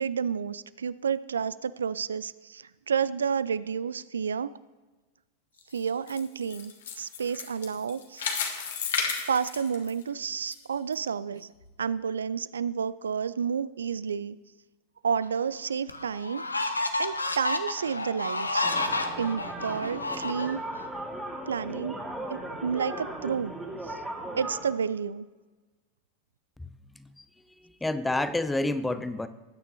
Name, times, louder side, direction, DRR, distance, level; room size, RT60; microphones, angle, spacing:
voice 1, 0.0-4.5 5.7-8.3 9.3-11.5 11.8-14.4 15.0-18.7 19.2-20.6 21.5-22.0 22.3-23.5 23.8-24.0 24.4-25.3, right 6 dB, 70° right, 18 dB, 0.4 m, -30 dB
sound 1, 5.6-10.5 10.9-11.0 11.6-11.7, left 6 dB, 60° left, 1.6 m, -33 dB
sound 2, 15.2-15.3 15.9-20.8, left 2 dB, 80° left, 0.8 m, -30 dB
sound 3, 18.6-24.6, right 1 dB, 10° right, 2.2 m, -37 dB
voice 2, 26.6-27.2 27.6-29.3, left 2 dB, 5° left, 13 dB, 0.6 m, -30 dB
20.0 x 9.1 x 2.9 m, 1.2 s
figure-of-eight pair, 90°, 0 cm